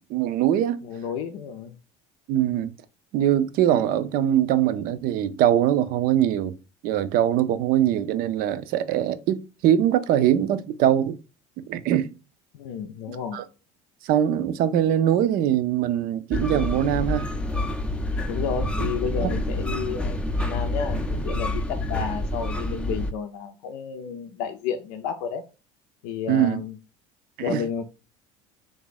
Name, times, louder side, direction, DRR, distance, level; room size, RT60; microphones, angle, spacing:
voice 1, 0.0-0.8 2.3-2.7 3.1-6.5 6.8-11.2 11.6-12.1 13.3-13.4 14.0-17.3 19.2-19.4 26.3-26.6 27.4-27.6, right 11 dB, 60° right, 0.5 m, -22 dB
voice 2, 0.8-1.8 12.5-13.4 18.3-20.2 20.5-25.4 26.0-26.8 27.4-27.8, left 7 dB, 75° left, 0.5 m, -31 dB
sound 1, 16.3-23.1, left 1 dB, 5° left, 0.5 m, -27 dB
3.4 x 2.5 x 3.9 m
supercardioid pair, 85°, 17 cm